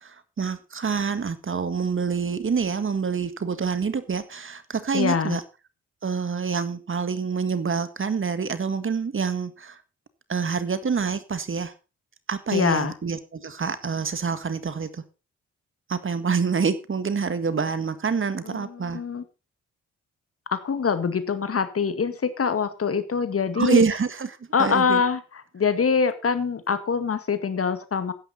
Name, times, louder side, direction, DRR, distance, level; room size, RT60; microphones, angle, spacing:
voice 1, 0.0-5.4 6.0-9.8 10.3-11.7 12.3-15.0 15.9-19.0 23.6-25.0, right 5 dB, 45° right, 1.8 m, -26 dB
voice 2, 4.9-5.4 12.5-12.9 18.5-19.2 20.5-23.8 24.5-25.2 25.5-28.1, left 6 dB, 50° left, 2.0 m, -24 dB
13.5 x 10.0 x 4.2 m
supercardioid pair, 55°, 30 cm